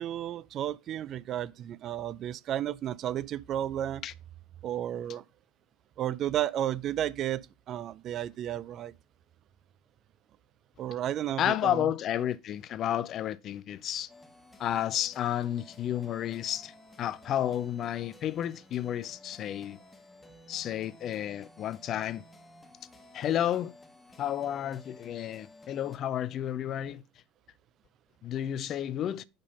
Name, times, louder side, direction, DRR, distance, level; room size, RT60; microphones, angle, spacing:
voice 1, 0.0-4.0 4.6-5.2 6.0-8.9 10.8-11.9, right 11 dB, 45° right, 0.4 m, -33 dB
voice 2, 11.4-14.1 14.6-19.8 20.5-22.2 23.1-23.7 24.2-27.0 28.2-29.2, left 11 dB, 45° left, 0.4 m, -31 dB
sound 1, 14.1-26.0, left 2 dB, 15° left, 1.1 m, -54 dB
5.4 x 5.2 x 5.3 m
hypercardioid pair, 75°, 0 cm